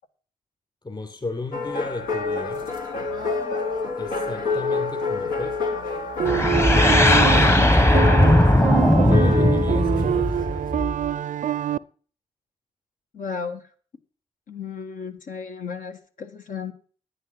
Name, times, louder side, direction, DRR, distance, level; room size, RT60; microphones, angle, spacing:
voice 1, 0.8-2.6 4.0-5.6 6.5-6.7 7.4-8.5 9.1-10.5, left 3 dB, 35° left, 2 dB, 6.3 m, -35 dB
sound 1, 1.5-10.7, left 4 dB, 85° left, 1.9 m, -28 dB
sound 2, 6.2-11.1, left 1 dB, 20° left, 1.3 m, -18 dB
sound 3, 6.2-11.8, right 10 dB, 65° right, 0.5 m, -26 dB
voice 2, 13.1-13.6 14.5-16.7, left 6 dB, 70° left, 5 dB, 1.7 m, -34 dB
9.8 x 9.6 x 5.9 m, 0.42 s
supercardioid pair, 45°, 14 cm